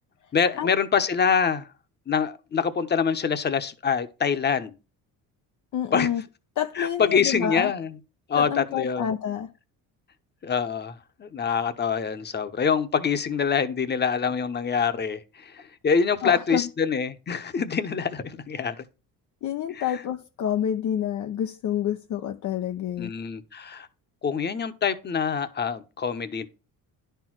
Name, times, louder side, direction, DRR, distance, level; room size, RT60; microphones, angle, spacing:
voice 1, 0.3-1.7 2.1-4.7 5.9-6.1 6.8-7.9 8.3-9.1 10.4-10.9 11.2-18.7 19.7-19.8 23.0-23.9 24.2-26.5, left 6 dB, 30° left, 1.0 m, -25 dB
voice 2, 5.7-6.2 6.6-7.7 8.3-9.5 16.2-16.7 19.4-23.1, left 9 dB, 55° left, 0.7 m, -28 dB
10.5 x 4.6 x 6.1 m
cardioid pair, 110°, 36 cm